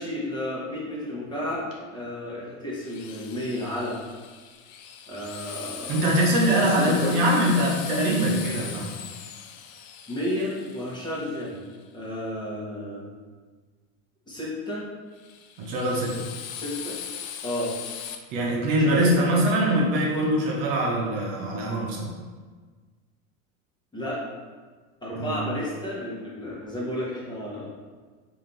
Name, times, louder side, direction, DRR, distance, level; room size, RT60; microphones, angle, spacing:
voice 1, 0.0-1.7 1.9-4.0 5.1-6.0 6.5-7.2 10.1-11.6 11.9-13.1 14.3-14.9 16.5-17.0 17.4-17.7 18.8-19.2 23.9-24.2 25.0-27.7, left 1 dB, 10° left, -7 dB, 1.2 m, -32 dB
Drill, 2.8-11.8 15.2-18.1, left 8 dB, 55° left, 0.5 m, -39 dB
voice 2, 5.9-8.9 15.6-16.1 18.3-22.1 25.2-25.4, right 1 dB, 55° right, -3 dB, 1.0 m, -23 dB
3.2 x 2.9 x 3.9 m, 1.4 s
hypercardioid pair, 105°, 41 cm